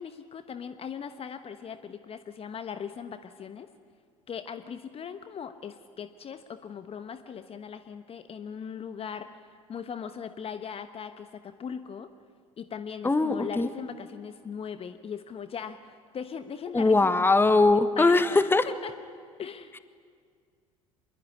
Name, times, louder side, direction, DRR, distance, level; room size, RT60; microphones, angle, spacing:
voice 1, 0.0-3.7 4.3-12.1 12.6-17.1 18.0-18.9 19.4-19.7, left 7 dB, 35° left, 10 dB, 1.2 m, -39 dB
voice 2, 13.0-13.7 16.7-18.7, left 3 dB, 10° left, 12 dB, 1.4 m, -21 dB
25.0 x 21.5 x 9.9 m, 2.1 s
figure-of-eight pair, 70°, 18 cm